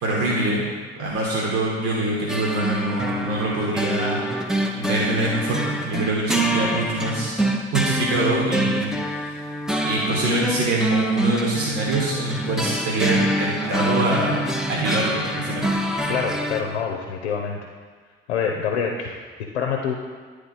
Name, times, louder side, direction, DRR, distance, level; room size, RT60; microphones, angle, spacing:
voice 1, 0.0-0.6 1.0-7.3 7.7-9.2 9.8-14.4 14.7-15.7, right 2 dB, 45° right, -3 dB, 1.3 m, -24 dB
sound 1, 2.3-16.6, right 1 dB, ahead, 0.6 m, -25 dB
voice 2, 16.1-17.6 18.3-19.9, left 6 dB, 70° left, 2 dB, 0.6 m, -26 dB
9.7 x 3.3 x 4.0 m, 1.5 s
figure-of-eight pair, 50°, 33 cm